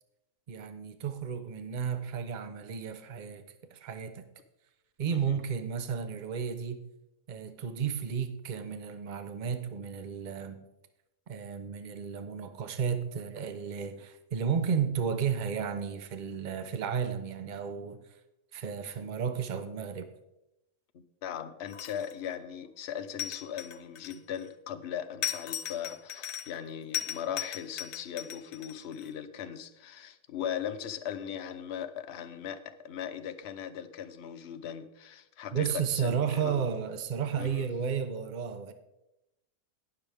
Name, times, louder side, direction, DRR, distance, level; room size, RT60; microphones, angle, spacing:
voice 1, 0.5-4.3 5.0-6.8 7.3-10.6 11.3-18.0 18.5-20.1 35.5-38.7, right 7 dB, 40° right, 0.7 m, -33 dB
voice 2, 20.9-36.6 37.4-37.7, left 9 dB, 55° left, 0.8 m, -39 dB
sound 1, 21.7-22.3 23.2-24.5 25.2-26.6 26.9-29.1, left 11 dB, 75° left, 1.2 m, -37 dB
18.5 x 6.9 x 3.5 m
omnidirectional pair, 1.7 m